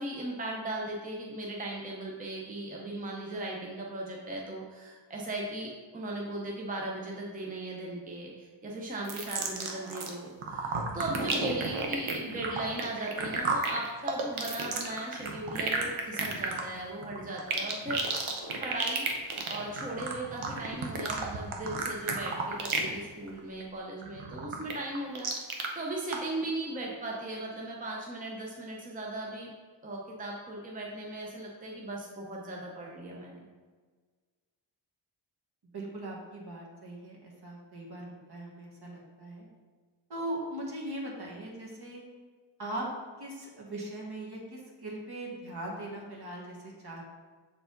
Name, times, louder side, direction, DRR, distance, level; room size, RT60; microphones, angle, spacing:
voice 1, 0.0-18.1 18.6-29.5 29.8-33.4, right 1 dB, 15° right, -2 dB, 0.7 m, -38 dB
sound 1, 9.0-10.1 10.4-23.0 23.3-23.6 24.0-25.7 26.1-26.2, right 4 dB, 85° right, 1.0 m, -32 dB
voice 2, 11.2-11.5 35.7-39.5 40.1-42.0 42.6-42.9 43.2-47.0, right 1 dB, 50° right, -2 dB, 1.6 m, -40 dB
6.9 x 4.7 x 3.8 m, 1.5 s
wide cardioid pair, 140°, 48 cm